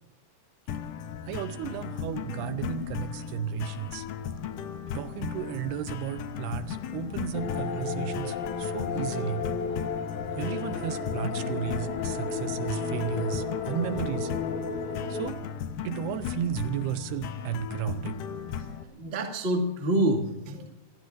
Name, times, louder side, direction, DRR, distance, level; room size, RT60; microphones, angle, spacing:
sound 1, 0.7-18.8, left 8 dB, 75° left, 1.9 m, -36 dB
voice 1, 1.2-4.1 4.9-9.5 10.3-14.3 15.1-15.4 15.8-18.2, right 11 dB, 80° right, 10 dB, 2.6 m, -34 dB
sound 2, 7.3-15.3, left 5 dB, 60° left, 2.2 m, -33 dB
voice 2, 18.6-20.7, right 1 dB, 30° right, 2 dB, 1.2 m, -28 dB
26.0 x 21.0 x 2.6 m, 0.99 s
omnidirectional pair, 4.9 m